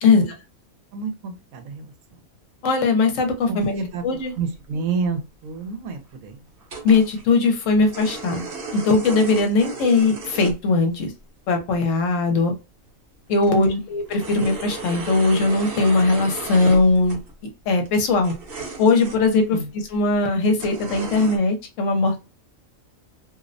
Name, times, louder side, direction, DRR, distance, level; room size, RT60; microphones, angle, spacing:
voice 1, 0.0-0.3 2.6-3.7 4.0-4.3 6.8-8.4 8.7-11.1 11.5-12.5 13.3-17.2 17.7-18.3 18.8-19.6 19.9-22.2, left 3 dB, 70° left, 5 dB, 1.0 m, -19 dB
voice 2, 0.9-1.9 3.5-4.0 4.4-6.4 13.5-13.8 19.5-19.7, right 4 dB, 80° right, 7 dB, 1.0 m, -29 dB
sound 1, 3.6-3.7 4.2-4.4 4.6-4.7 4.9-5.0 5.6-5.7 6.6-7.3 7.6-10.5 10.9-11.1 12.3-12.4 12.9-13.0 13.3-17.3 17.8-19.3 19.9-20.0 20.6-21.4, right 3 dB, 50° right, 0.8 m, -35 dB
2.5 x 2.0 x 2.5 m, 0.28 s
omnidirectional pair, 1.4 m